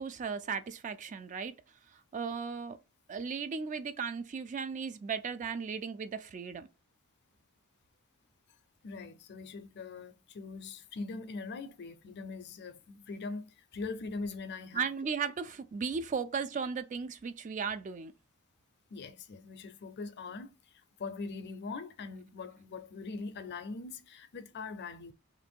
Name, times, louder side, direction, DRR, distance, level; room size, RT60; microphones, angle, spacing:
voice 1, 0.0-1.5 2.1-2.8 3.1-6.7 14.7-18.1, right 5 dB, 35° right, 0.3 m, -36 dB
voice 2, 8.8-14.9 18.9-20.5 21.0-25.1, left 4 dB, 50° left, 0.5 m, -42 dB
2.9 x 2.6 x 4.3 m
head